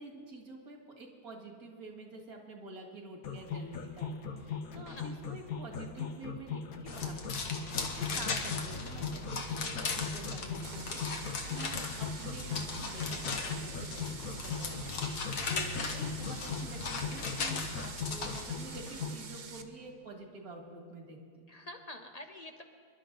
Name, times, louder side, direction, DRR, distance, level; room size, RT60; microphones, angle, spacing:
voice 1, 0.0-7.2 7.7-21.5, right 2 dB, 70° right, 2 dB, 2.3 m, -48 dB
sound 1, 3.2-19.2, left 6 dB, 70° left, 1.4 m, -39 dB
sound 2, 6.9-18.5, left 3 dB, 90° left, 1.7 m, -38 dB
sound 3, 10.6-19.6, right 5 dB, 45° right, 0.7 m, -47 dB
voice 2, 15.8-16.1 21.5-22.6, left 1 dB, 30° left, 5 dB, 0.8 m, -48 dB
26.5 x 11.5 x 3.9 m, 2.1 s
omnidirectional pair, 1.6 m